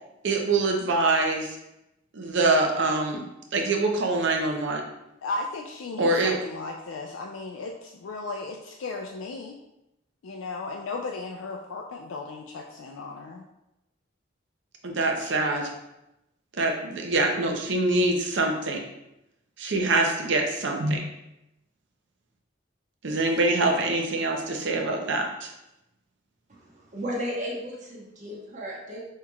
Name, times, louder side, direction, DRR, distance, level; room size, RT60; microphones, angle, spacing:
voice 1, 0.2-1.6 2.1-3.2 3.5-4.8 6.0-6.4 14.8-15.7 16.6-18.8 19.6-21.0 23.0-25.5, right 2 dB, 65° right, 2 dB, 0.7 m, -24 dB
voice 2, 5.2-9.6 10.2-13.5, left 3 dB, 80° left, 1 dB, 0.4 m, -35 dB
voice 3, 26.5-29.0, equal, 40° right, -4 dB, 1.1 m, -34 dB
5.6 x 3.1 x 2.3 m, 0.89 s
head